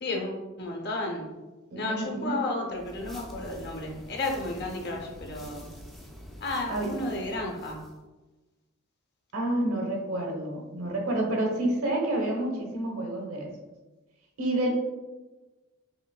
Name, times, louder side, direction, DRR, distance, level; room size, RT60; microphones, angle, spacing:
voice 1, 0.0-1.3 1.7-5.7 6.4-7.9, left 2 dB, 50° left, 0 dB, 0.8 m, -33 dB
voice 2, 1.7-2.3 6.7-6.9 9.3-13.5 14.4-14.7, right 1 dB, 70° right, -1 dB, 1.2 m, -29 dB
sound 1, 2.7-8.0, equal, ahead, 0.4 m, -46 dB
5.9 x 3.1 x 2.3 m, 1.2 s
head